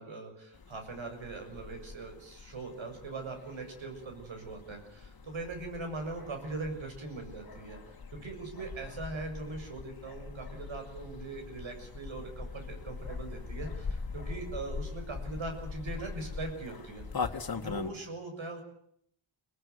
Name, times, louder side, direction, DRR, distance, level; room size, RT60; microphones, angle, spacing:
voice 1, 0.0-17.0 17.6-18.6, right 3 dB, 80° right, 5 dB, 7.2 m, -41 dB
sound 1, 0.5-17.9, left 4 dB, 50° left, 2.1 m, -42 dB
24.5 x 19.0 x 9.6 m, 0.71 s
cardioid pair, 70°, 46 cm